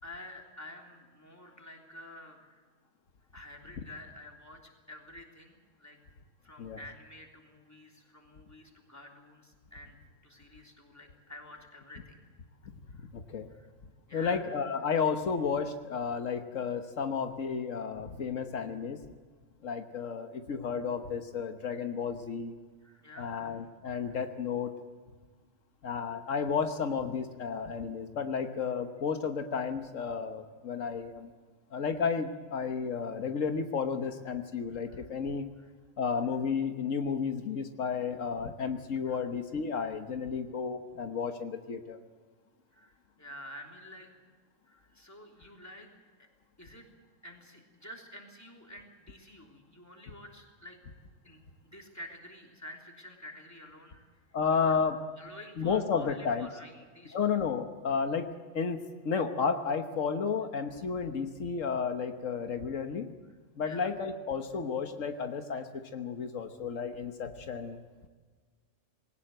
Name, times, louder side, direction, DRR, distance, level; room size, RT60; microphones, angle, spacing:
voice 1, 0.0-2.6 3.3-6.0 6.4-10.0 10.2-12.2 12.9-13.1 13.5-13.7 14.1-14.5 22.8-23.6 24.1-24.2 34.8-35.1 35.6-35.7 38.9-39.3 42.7-44.2 44.6-45.9 46.2-46.3 46.6-46.9 47.2-50.8 51.2-54.1 54.5-54.8 55.2-57.3 63.3-63.4 63.6-63.9, left 1 dB, 10° left, 1 dB, 3.3 m, -50 dB
voice 2, 13.1-13.5 14.1-19.0 19.6-22.5 23.2-24.7 25.8-31.3 31.7-35.5 36.0-42.0 54.3-55.0 55.6-56.5 57.1-58.3 58.5-58.8 59.0-63.1 63.6-67.8, left 6 dB, 80° left, 6 dB, 1.6 m, -32 dB
20.5 x 18.0 x 7.8 m, 1.5 s
omnidirectional pair, 1.3 m